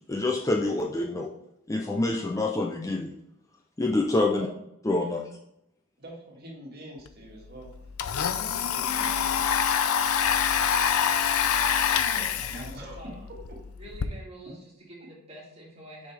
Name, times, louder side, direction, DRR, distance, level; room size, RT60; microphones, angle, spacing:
voice 1, 0.1-1.3 1.7-3.1 3.8-4.5 4.8-5.2, left 2 dB, 15° left, 1 dB, 0.4 m, -26 dB
voice 2, 6.0-7.7 8.3-9.5 12.1-13.0, right 1 dB, 45° right, -2 dB, 1.8 m, -44 dB
Domestic sounds home sounds, 7.1-7.2 7.4-14.1, left 8 dB, 75° left, 0.5 m, -26 dB
voice 3, 12.9-13.3 13.8-16.1, right 1 dB, 30° right, -5 dB, 2.3 m, -46 dB
6.6 x 5.3 x 3.3 m, 0.82 s
head